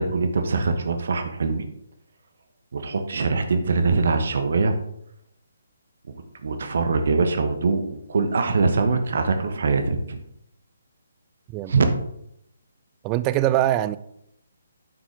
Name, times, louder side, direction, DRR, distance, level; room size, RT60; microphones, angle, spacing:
voice 1, 0.0-1.7 2.7-4.7 6.4-10.2 11.7-11.9, right 4 dB, 55° right, 7 dB, 1.2 m, -23 dB
voice 2, 13.0-14.0, right 13 dB, 20° right, 14 dB, 0.3 m, -22 dB
8.8 x 6.2 x 3.4 m, 0.78 s
figure-of-eight pair, 140°, 0 cm